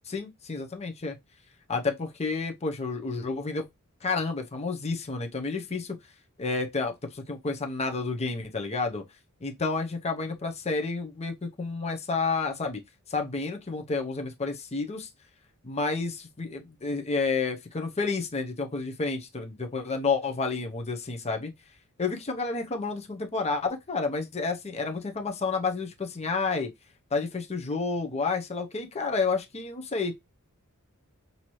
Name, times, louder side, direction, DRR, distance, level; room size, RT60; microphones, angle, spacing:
voice 1, 0.1-1.1 1.7-3.7 4.0-6.0 6.4-9.0 9.4-12.8 13.1-15.1 15.6-21.5 22.0-26.7 27.1-30.1, left 4 dB, 30° left, 0.7 m, -30 dB
5.8 x 2.7 x 3.1 m
head